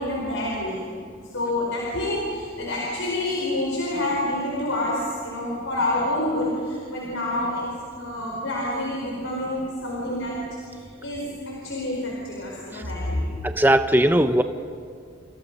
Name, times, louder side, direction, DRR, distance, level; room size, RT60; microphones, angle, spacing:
voice 1, 0.0-7.7 8.0-13.3 14.3-14.4, left 1 dB, 85° left, -3 dB, 4.9 m, -28 dB
voice 2, 13.4-14.4, right 1 dB, 10° right, 8 dB, 0.8 m, -18 dB
29.0 x 28.5 x 5.5 m, 2.2 s
head